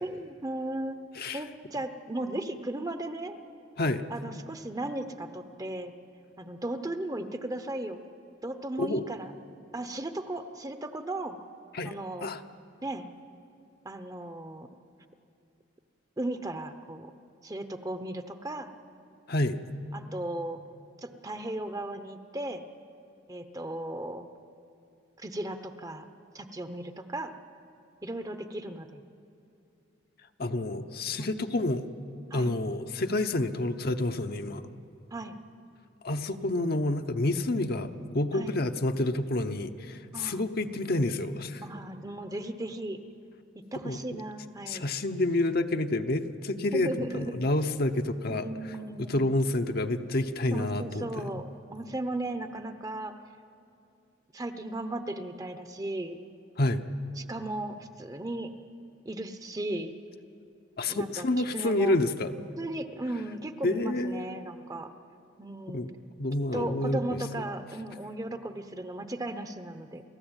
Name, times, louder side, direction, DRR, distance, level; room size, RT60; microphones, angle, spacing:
voice 1, 0.0-1.0 1.3-3.4 4.1-5.9 6.4-8.0 8.4-9.3 9.7-11.4 11.8-12.3 12.8-13.0 13.8-14.7 16.2-17.1 17.4-18.7 19.9-20.6 21.0-22.6 23.3-24.3 25.2-26.1 26.3-27.3 28.0-29.0 31.2-31.3 32.3-32.5 35.1-35.3 38.3-38.6 40.1-40.4 41.6-43.0 43.5-44.8 46.7-47.4 48.3-49.4 50.5-51.4 51.7-53.1 54.3-56.2 57.2-58.5 59.0-60.0 60.9-61.9 62.6-64.9 65.4-65.9 66.5-70.0, right 1 dB, 20° right, 9 dB, 0.8 m, -36 dB
voice 2, 19.3-19.6 30.4-31.9 32.3-34.6 36.0-41.6 43.8-44.0 44.7-48.5 49.1-51.1 56.6-56.9 60.8-62.3 63.6-64.3 65.7-65.9 66.2-67.2, left 2 dB, 55° left, 7 dB, 0.9 m, -28 dB
30.0 x 14.0 x 8.9 m, 2.6 s
head